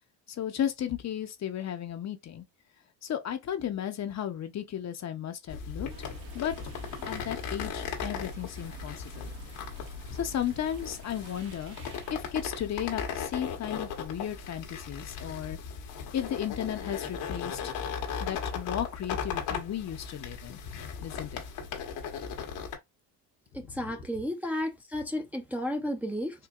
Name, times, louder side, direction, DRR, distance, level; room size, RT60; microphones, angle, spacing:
voice 1, 0.3-2.4 3.0-5.9 6.3-6.5 7.0-9.3 10.1-15.6 16.1-17.7 18.2-21.4 23.6-23.9, left 10 dB, 45° left, 0.7 m, -34 dB
sound 1, 5.5-22.8, left 6 dB, 80° left, 1.4 m, -37 dB
sound 2, 5.9-12.1, right 2 dB, 65° right, 1.3 m, -48 dB
voice 2, 23.5-26.5, left 1 dB, 5° right, 0.6 m, -33 dB
4.5 x 2.7 x 2.4 m
cardioid pair, 110°, 39 cm